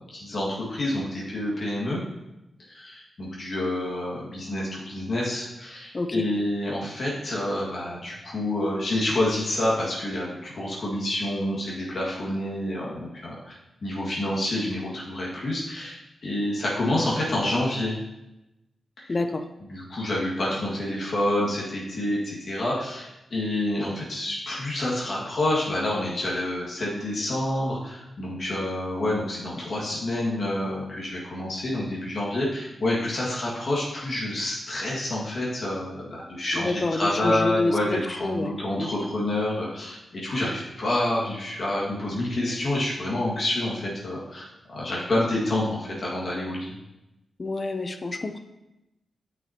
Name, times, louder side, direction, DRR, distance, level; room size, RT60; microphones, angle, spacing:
voice 1, 0.1-2.0 2.7-13.6 13.8-18.0 19.1-19.2 19.6-46.7, left 1 dB, 55° left, -6 dB, 1.9 m, -28 dB
voice 2, 5.9-6.3 19.1-19.4 36.5-38.9 47.4-48.4, left 2 dB, 35° left, 8 dB, 0.6 m, -28 dB
9.2 x 6.0 x 2.9 m, 0.94 s
wide cardioid pair, 90°, 0 cm